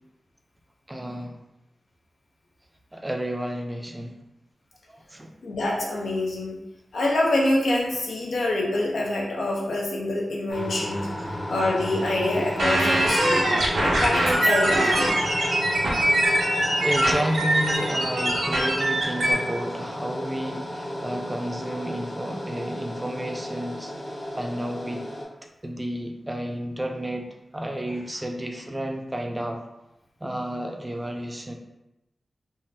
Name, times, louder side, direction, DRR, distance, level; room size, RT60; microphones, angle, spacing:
voice 1, 0.9-1.4 2.9-4.2 4.9-5.3 16.8-25.1 25.6-29.6 30.2-31.5, equal, 20° right, 3 dB, 0.4 m, -31 dB
voice 2, 5.4-6.6 6.9-11.1 11.5-15.2, left 1 dB, 85° left, -2 dB, 0.6 m, -26 dB
sound 1, 10.5-25.2, equal, 40° left, 0.9 m, -33 dB
sound 2, 12.6-19.3, right 1 dB, 90° right, 0.6 m, -23 dB
3.7 x 2.1 x 2.6 m, 0.93 s
cardioid pair, 60°, 0 cm